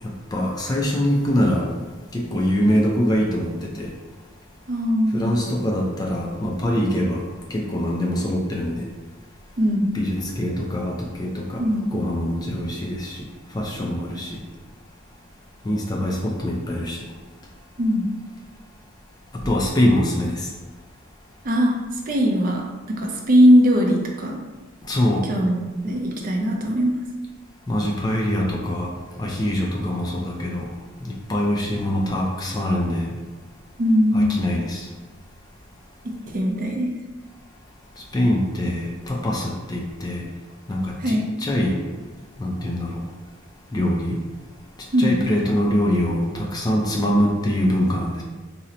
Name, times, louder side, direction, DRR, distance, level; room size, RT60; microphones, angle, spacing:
voice 1, 0.0-1.7 2.1-3.9 5.1-7.2 7.5-8.9 9.9-11.7 11.9-13.3 13.5-14.4 15.6-17.0 19.4-20.5 24.8-25.3 27.7-28.9 29.2-30.7 31.0-33.1 34.1-34.9 38.1-40.3 40.7-41.8 42.4-43.0 43.7-44.2 45.0-48.2, equal, 20° left, -1 dB, 0.3 m, -23 dB
voice 2, 4.7-5.4 9.6-9.9 11.6-11.9 17.8-18.1 21.4-21.8 22.1-24.4 25.3-27.0 33.8-34.4 36.0-36.9 41.0-41.3 44.9-45.2, equal, 45° right, 0 dB, 0.4 m, -20 dB
2.8 x 2.1 x 3.7 m, 1.3 s
head